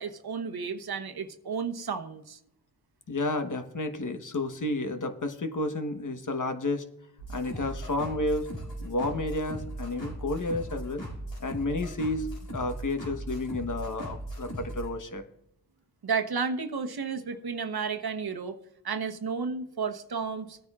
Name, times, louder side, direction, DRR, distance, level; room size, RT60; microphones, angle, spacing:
voice 1, 0.0-2.4 7.5-7.7 16.0-18.6 18.8-20.6, right 5 dB, 60° right, 7 dB, 1.1 m, -32 dB
voice 2, 3.1-6.8 7.3-8.5 8.8-11.0 11.4-15.2, left 2 dB, 45° left, 7 dB, 1.2 m, -31 dB
sound 1, 7.2-14.9, right 1 dB, 85° left, 5.0 m, -38 dB
18.5 x 9.3 x 2.4 m, 0.80 s
cardioid pair, 50°, 42 cm